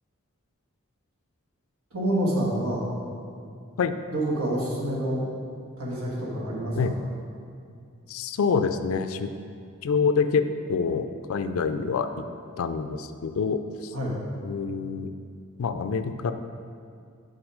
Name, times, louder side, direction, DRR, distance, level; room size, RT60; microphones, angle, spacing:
voice 1, 1.9-2.8 4.1-5.2 5.8-6.9 13.9-14.2, right 1 dB, 90° right, -5 dB, 1.7 m, -27 dB
voice 2, 8.1-9.3 9.8-12.2 12.6-13.9 14.4-15.1 15.6-16.3, left 5 dB, 75° left, 9 dB, 0.3 m, -26 dB
6.2 x 5.6 x 4.8 m, 2.3 s
head